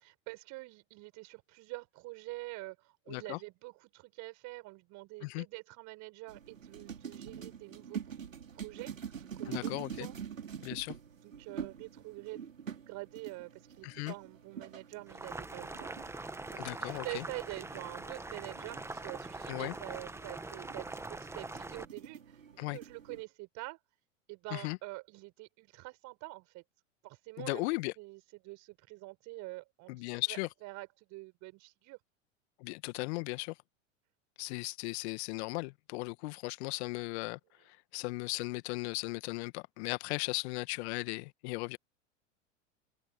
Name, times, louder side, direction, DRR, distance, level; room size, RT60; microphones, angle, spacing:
voice 1, 0.0-10.2 11.2-12.4 12.9-23.8 24.3-26.6 27.0-27.7 28.0-29.9 30.3-32.0, right 23 dB, 50° right, 6.2 m, -46 dB
voice 2, 3.1-3.4 5.2-5.5 9.5-10.1 10.6-10.9 13.8-14.1 16.6-17.2 19.5-19.7 22.6-22.8 24.5-24.8 27.4-27.9 29.9-30.5 32.6-33.5 34.4-37.4 37.7-41.8, left 25 dB, 55° left, 1.8 m, -37 dB
sound 1, 6.3-23.2, right 7 dB, 85° right, 3.1 m, -46 dB
Boiling, 15.1-21.9, right 2 dB, 5° right, 1.7 m, -43 dB
hypercardioid pair, 90°, 38 cm